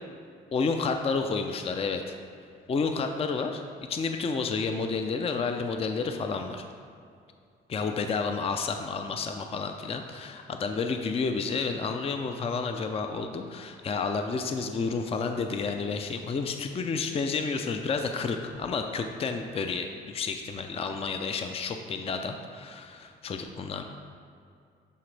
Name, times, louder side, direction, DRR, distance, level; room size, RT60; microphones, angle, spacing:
voice 1, 0.5-2.2 2.7-3.6 3.9-6.6 7.7-23.8, left 4 dB, 30° left, 6 dB, 0.4 m, -30 dB
11.0 x 3.8 x 3.3 m, 2.4 s
cardioid pair, 90°, 20 cm